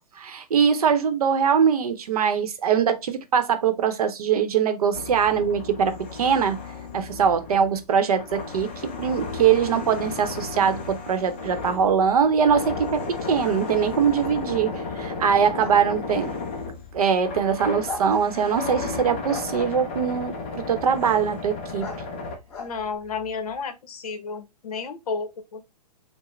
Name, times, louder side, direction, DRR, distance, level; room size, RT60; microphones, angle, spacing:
voice 1, 0.2-6.6 6.9-16.3 16.9-21.9, right 7 dB, 60° right, 0.7 m, -22 dB
sound 1, 4.9-22.4, left 4 dB, 15° left, 0.3 m, -34 dB
sound 2, 11.1-23.6, left 4 dB, 40° left, 1.7 m, -43 dB
voice 2, 22.6-25.6, left 5 dB, 60° left, 0.8 m, -32 dB
4.7 x 2.0 x 3.1 m
hypercardioid pair, 170°, 21 cm